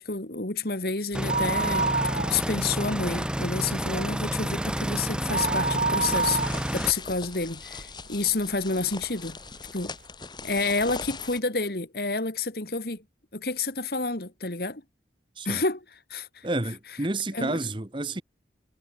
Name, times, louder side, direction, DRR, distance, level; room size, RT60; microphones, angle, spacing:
voice 1, 0.0-9.4 9.7-9.9 10.4-13.0 13.3-14.8 15.4-16.5 17.3-17.7, left 4 dB, 55° left, 2.4 m, -29 dB
sound 1, 1.1-6.9, equal, 5° right, 2.0 m, -30 dB
sound 2, 1.1-2.8 3.1-3.2 3.7-8.1 8.6-8.7 9.5-9.6 9.8-9.9, right 4 dB, 45° right, 2.0 m, -28 dB
sound 3, 6.1-11.4, left 4 dB, 25° left, 4.8 m, -41 dB
voice 2, 16.4-18.2, right 2 dB, 25° right, 1.3 m, -30 dB
head